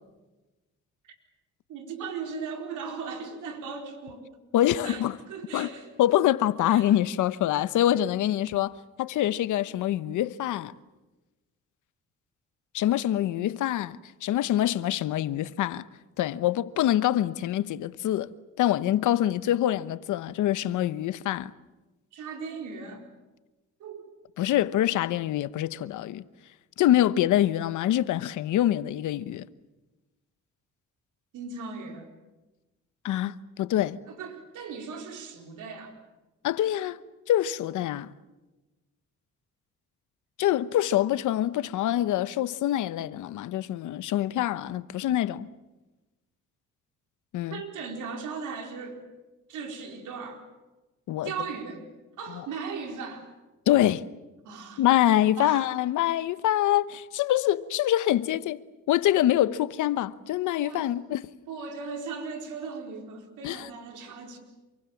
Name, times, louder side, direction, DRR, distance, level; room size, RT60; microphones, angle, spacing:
voice 1, 1.7-4.2 4.8-6.0 6.7-7.0 22.1-23.1 23.8-24.1 31.3-32.1 34.1-35.9 47.5-49.1 49.5-50.4 51.2-51.9 52.2-53.3 54.4-54.8 55.4-55.7 60.6-60.9 61.5-64.4, right 5 dB, 80° right, 4.5 m, -38 dB
voice 2, 4.5-5.2 5.5-5.7 6.0-10.7 12.7-15.8 16.2-18.3 18.6-21.5 24.4-26.2 26.8-29.5 33.0-34.0 36.4-37.0 37.3-38.1 40.4-45.5 47.3-47.6 51.1-51.3 53.7-54.1 54.8-58.6 58.9-61.2 63.4-63.7, left 13 dB, 85° left, 1.0 m, -25 dB
27.5 x 24.0 x 7.3 m
cardioid pair, 90°, 30 cm